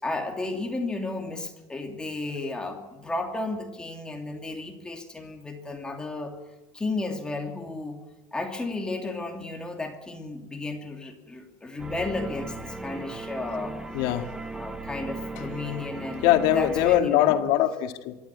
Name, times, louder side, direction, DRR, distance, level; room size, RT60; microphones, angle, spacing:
voice 1, 0.0-6.4 6.7-8.0 8.3-13.8 14.5-16.3 16.5-17.4, left 2 dB, 10° left, 2 dB, 2.8 m, -33 dB
sound 1, 11.8-17.0, right 2 dB, 5° right, 1.3 m, -37 dB
voice 2, 13.9-14.3 15.4-15.7 16.2-18.2, left 12 dB, 80° left, 6 dB, 2.2 m, -23 dB
25.0 x 13.0 x 10.0 m, 1.0 s
cardioid pair, 165°, 9 cm